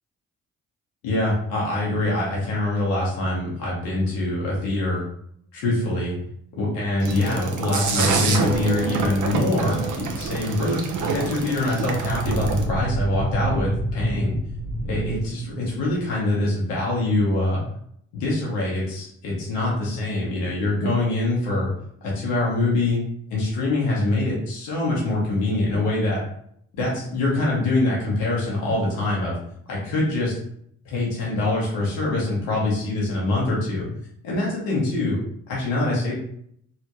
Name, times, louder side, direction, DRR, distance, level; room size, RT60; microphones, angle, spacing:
voice 1, 1.0-5.0 5.5-6.1 6.5-10.8 11.1-14.4 14.9-17.6 18.2-21.7 22.0-23.0 23.3-26.2 26.7-29.4 29.7-30.3 30.8-33.9 34.2-35.2 35.5-36.1, left 2 dB, 85° left, -5 dB, 1.2 m, -24 dB
sound 1, 7.0-12.6, right 4 dB, 60° right, 0.7 m, -27 dB
sound 2, 11.6-16.1, right 2 dB, 65° left, 1.3 m, -28 dB
3.5 x 2.2 x 3.0 m, 0.67 s
hypercardioid pair, 45°, 34 cm